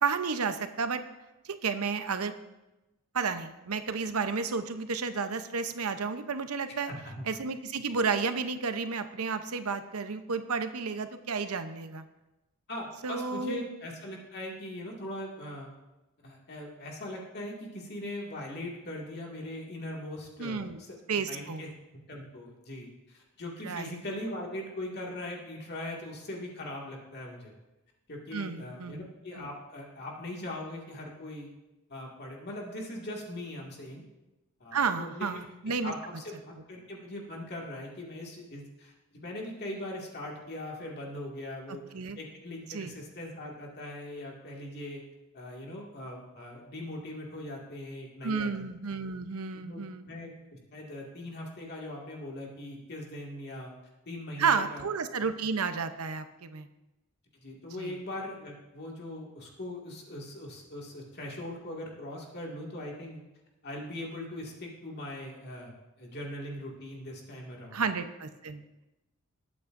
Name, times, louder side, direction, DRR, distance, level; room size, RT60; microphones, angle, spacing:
voice 1, 0.0-1.0 1.4-2.3 3.1-6.9 7.3-12.0 13.0-13.7 20.4-20.8 21.1-21.6 23.7-24.0 28.3-29.1 29.3-29.5 34.7-35.9 41.7-42.2 42.7-42.9 48.2-50.0 54.4-56.7 57.8-57.9 67.7-68.6, right 5 dB, 90° right, 9 dB, 0.8 m, -32 dB
voice 2, 6.9-7.3 12.7-15.7 16.2-21.0 21.3-21.7 22.1-27.5 28.1-31.5 31.9-34.0 34.6-35.3 35.8-41.8 42.2-45.0 45.3-48.5 49.5-49.8 50.1-53.7 54.1-54.8 57.4-63.2 63.6-67.8, left 1 dB, 50° left, -2 dB, 2.1 m, -40 dB
20.0 x 8.5 x 2.6 m, 1.0 s
head